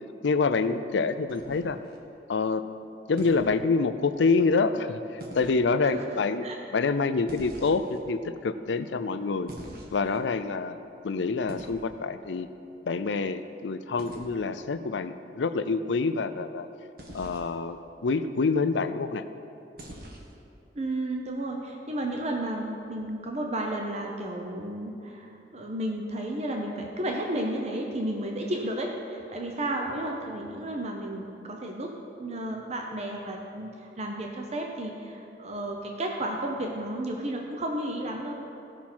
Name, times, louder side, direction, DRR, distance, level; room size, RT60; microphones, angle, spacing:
voice 1, 0.2-1.8 2.3-2.6 3.1-6.4 6.7-9.5 9.9-10.8 11.0-12.5 12.9-16.7 17.1-19.2, left 4 dB, 85° left, 11 dB, 0.5 m, -26 dB
sound 1, 1.3-2.0 3.2-3.5 5.2-5.6 7.3-8.0 9.5-10.2 11.5-11.8 14.0-14.3 17.0-17.5 19.8-20.3, right 1 dB, 55° right, 1.4 m, -43 dB
voice 2, 20.8-31.9 32.2-38.3, right 1 dB, 40° right, 1 dB, 0.8 m, -32 dB
16.0 x 5.9 x 4.4 m, 2.7 s
head